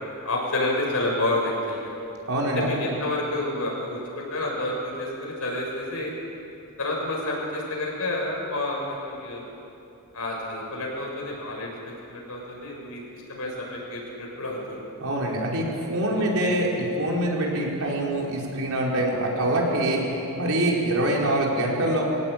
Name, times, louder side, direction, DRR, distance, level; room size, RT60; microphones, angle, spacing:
voice 1, 0.2-1.9 2.5-6.1 6.8-9.4 10.1-14.8 16.2-16.5, left 1 dB, 70° left, -1 dB, 6.7 m, -29 dB
voice 2, 2.3-2.7 15.0-20.0 20.3-22.0, right 1 dB, 70° right, -3 dB, 4.9 m, -24 dB
23.5 x 18.0 x 8.9 m, 2.8 s
head